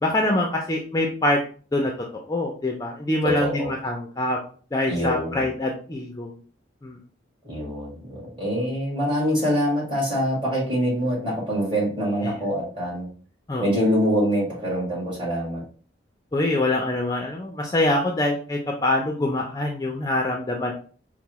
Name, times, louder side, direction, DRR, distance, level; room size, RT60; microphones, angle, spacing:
voice 1, 0.0-1.4 1.7-1.9 2.2-4.4 4.7-6.4 6.8-7.0 12.2-12.3 13.5-13.7 16.3-20.7, left 1 dB, 20° left, 0 dB, 0.4 m, -24 dB
voice 2, 3.2-3.7 4.9-5.5 7.4-13.1 13.6-15.6, equal, 30° right, -6 dB, 1.8 m, -25 dB
4.5 x 2.0 x 2.9 m, 0.41 s
head